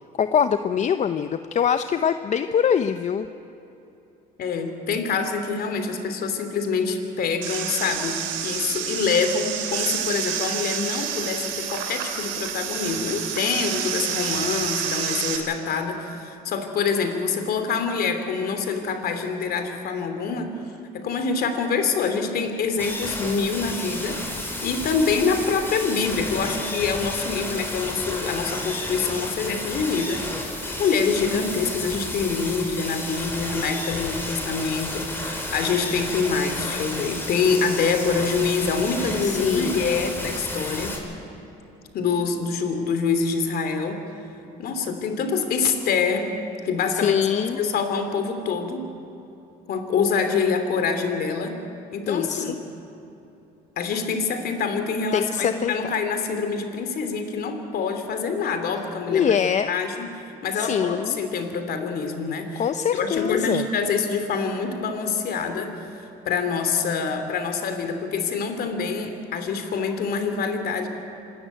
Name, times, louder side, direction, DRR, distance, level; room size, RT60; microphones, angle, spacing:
voice 1, 0.2-3.3 39.2-39.8 46.9-47.6 52.1-52.6 55.1-55.9 59.1-59.7 60.6-61.2 62.6-63.7, left 8 dB, 40° left, 10 dB, 0.7 m, -23 dB
voice 2, 4.4-8.2 8.4-20.5 20.9-24.2 24.6-30.2 30.8-40.9 41.9-44.0 44.6-46.3 46.6-48.8 49.7-51.5 51.9-52.5 53.8-59.4 59.7-60.1 60.4-62.6 62.9-70.9, left 5 dB, 60° left, 7 dB, 3.0 m, -25 dB
sound 1, 7.4-15.4, right 8 dB, 90° right, 2.8 m, -29 dB
sound 2, 22.8-41.0, left 1 dB, 10° left, 5.1 m, -32 dB
26.0 x 13.0 x 9.2 m, 2.9 s
supercardioid pair, 95°, 18 cm